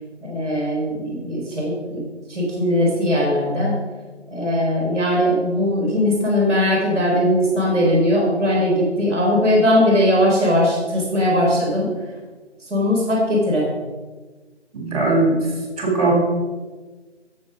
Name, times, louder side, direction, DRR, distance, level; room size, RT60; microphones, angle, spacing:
voice 1, 0.2-2.0 2.3-3.7 4.3-11.9 12.6-13.7, left 1 dB, ahead, -18 dB, 2.0 m, -19 dB
voice 2, 14.7-15.5 15.8-16.1, right 3 dB, 30° right, -2 dB, 3.4 m, -19 dB
9.0 x 7.6 x 5.2 m, 1.3 s
figure-of-eight pair, 160°, 35 cm